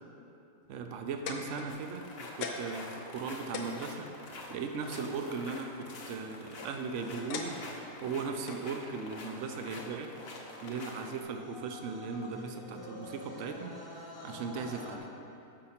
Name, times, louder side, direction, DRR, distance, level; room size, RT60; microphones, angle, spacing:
voice 1, 0.7-4.1 4.5-7.6 8.0-10.1 10.6-15.1, right 5 dB, 65° right, 5 dB, 0.7 m, -38 dB
sound 1, 0.9-2.0 2.4-2.8 3.2-3.3 3.5-5.1 6.1-6.6 7.3-7.9 8.5-8.7 9.5-9.6, left 5 dB, 85° left, 1.3 m, -40 dB
sound 2, 1.7-11.2, left 2 dB, 50° left, 0.9 m, -47 dB
sound 3, 10.3-15.0, left 1 dB, 15° left, 0.9 m, -47 dB
6.5 x 5.3 x 5.6 m, 2.8 s
omnidirectional pair, 1.7 m